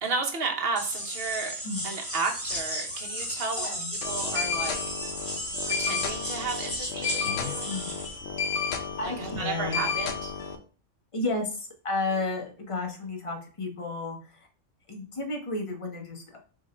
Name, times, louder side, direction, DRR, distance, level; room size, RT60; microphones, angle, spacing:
voice 1, 0.0-1.6 1.8-3.7 4.1-4.8 5.6-7.7 9.0-10.3, right 4 dB, 50° right, 3 dB, 1.0 m, -32 dB
sound 1, 0.8-8.2, equal, 10° left, 1.2 m, -34 dB
voice 2, 3.6-3.9 7.6-7.9 9.0-9.9 11.1-14.5 14.9-16.4, left 2 dB, 30° left, 2 dB, 0.8 m, -32 dB
sound 2, 4.0-10.6, left 6 dB, 80° left, 1.0 m, -32 dB
3.8 x 2.6 x 4.2 m, 0.37 s
omnidirectional pair, 1.3 m